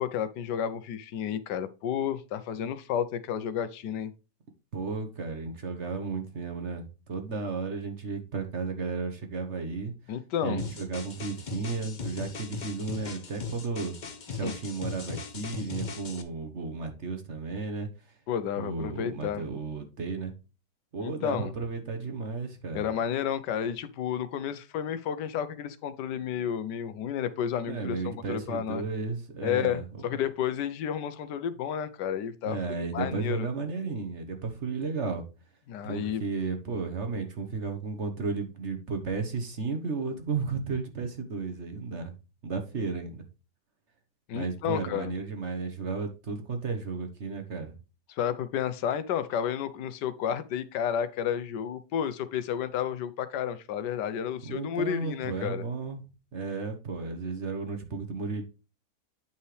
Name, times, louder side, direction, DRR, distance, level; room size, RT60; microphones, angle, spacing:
voice 1, 0.0-4.1 10.1-10.6 14.4-14.5 18.3-19.4 21.0-21.5 22.7-28.8 29.4-33.5 35.7-36.2 44.3-45.1 48.1-55.7, left 9 dB, 80° left, 1.3 m, -31 dB
voice 2, 4.7-9.9 10.4-14.0 14.3-17.9 18.6-20.3 20.9-22.9 27.7-29.8 32.4-35.2 35.8-42.1 42.4-43.2 44.3-47.7 54.4-56.0 56.3-58.4, right 4 dB, 45° right, 1.3 m, -33 dB
sound 1, 10.6-16.2, left 5 dB, 40° left, 0.7 m, -38 dB
8.8 x 5.5 x 3.2 m
omnidirectional pair, 1.8 m